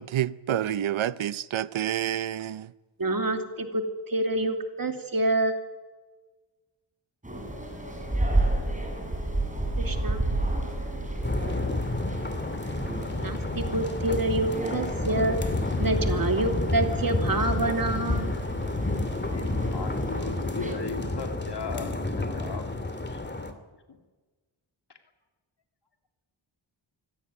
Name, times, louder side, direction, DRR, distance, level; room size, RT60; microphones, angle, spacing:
voice 1, 0.0-2.7, right 11 dB, 85° right, 0.8 m, -28 dB
voice 2, 3.0-5.5 9.8-10.2 13.2-15.4 15.8-18.3, right 2 dB, 45° right, 2.9 m, -27 dB
sound 1, 7.2-20.7, right 1 dB, 15° right, 6.2 m, -32 dB
sound 2, 11.2-23.5, left 2 dB, 20° left, 2.5 m, -30 dB
voice 3, 19.2-22.7 23.1-23.2, left 4 dB, 60° left, 2.9 m, -37 dB
24.5 x 17.0 x 9.8 m
wide cardioid pair, 90°, 46 cm